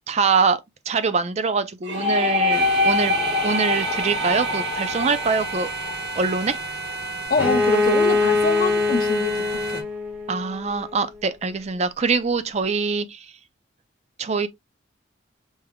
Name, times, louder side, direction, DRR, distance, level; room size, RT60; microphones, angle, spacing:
voice 1, 0.1-0.6 0.9-3.2 3.4-5.7 6.2-6.6 10.3-13.3 14.2-14.5, right 4 dB, 35° right, 0.4 m, -23 dB
sound 1, 1.8-7.5, left 2 dB, 80° right, 2.4 m, -25 dB
sound 2, 2.5-9.8, right 3 dB, 55° right, 1.0 m, -32 dB
voice 2, 7.3-9.8, left 3 dB, 45° left, 0.5 m, -25 dB
Bowed string instrument, 7.3-11.0, left 3 dB, 10° right, 1.2 m, -23 dB
5.3 x 3.4 x 2.2 m
head